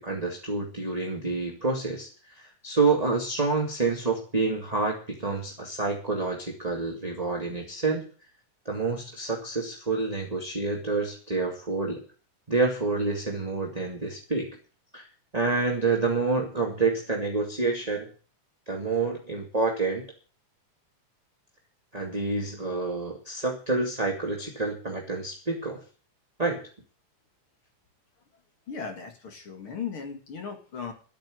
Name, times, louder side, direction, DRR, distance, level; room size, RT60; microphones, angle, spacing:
voice 1, 0.0-2.1 2.3-8.1 8.7-12.0 12.5-14.6 14.9-15.1 15.3-18.1 18.7-20.0 21.9-25.8 26.4-26.6, right 3 dB, 15° right, 0 dB, 1.8 m, -28 dB
voice 2, 28.7-30.9, left 6 dB, 45° left, 5 dB, 2.6 m, -37 dB
13.0 x 8.9 x 7.9 m, 0.38 s
omnidirectional pair, 3.8 m